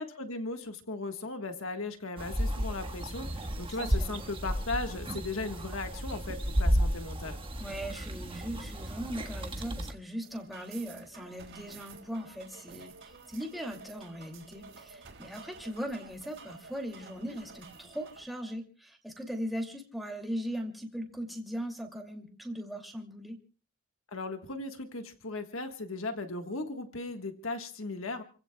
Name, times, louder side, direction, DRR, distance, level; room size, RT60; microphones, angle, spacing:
voice 1, 0.0-7.4 24.1-28.2, left 3 dB, 85° left, 6 dB, 1.5 m, -37 dB
sound 1, 2.2-9.9, equal, 25° right, 1.5 m, -33 dB
voice 2, 3.8-4.2 7.6-23.4, equal, ahead, 1 dB, 2.5 m, -39 dB
sound 2, 10.2-18.3, right 4 dB, 65° right, 3.7 m, -51 dB
30.0 x 16.0 x 2.3 m, 0.38 s
head